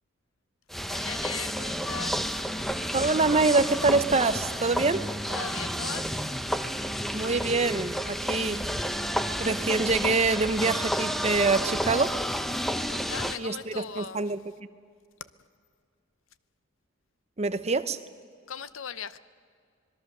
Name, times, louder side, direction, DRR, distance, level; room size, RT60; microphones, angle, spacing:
sound 1, 0.7-13.4, equal, ahead, 0.7 m, -31 dB
voice 1, 0.9-2.4 5.3-6.2 12.9-14.2 18.5-19.2, left 7 dB, 80° left, 0.8 m, -39 dB
voice 2, 2.9-5.1 7.1-8.6 9.4-12.2 13.4-14.4 17.4-18.0, right 3 dB, 35° right, 0.8 m, -25 dB
26.0 x 21.0 x 6.7 m
head